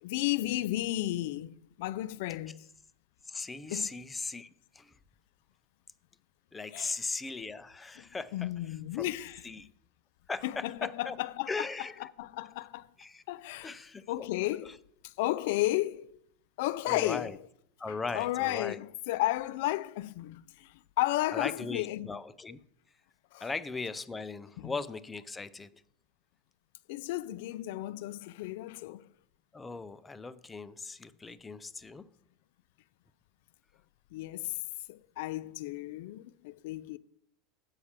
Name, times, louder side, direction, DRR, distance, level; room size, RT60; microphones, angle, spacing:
voice 1, 0.0-2.7 3.7-3.9 6.7-7.0 8.0-8.1 8.3-9.5 10.4-11.7 12.0-12.9 13.3-13.7 14.1-16.1 16.6-17.4 17.9-22.2 23.3-23.5 24.6-24.7 26.9-29.1 34.1-34.6 34.9-37.0, left 16 dB, 70° left, 0.4 m, -33 dB
voice 2, 3.3-4.9 6.5-8.5 9.0-9.1 9.4-9.7 10.3-11.2 11.5-12.0 13.0-13.2 13.6-14.3 14.6-14.7 16.9-17.4 17.8-18.8 21.3-22.6 23.4-25.7 29.5-32.0, left 4 dB, 15° left, 0.5 m, -38 dB
8.3 x 4.9 x 7.3 m
supercardioid pair, 125°, 0 cm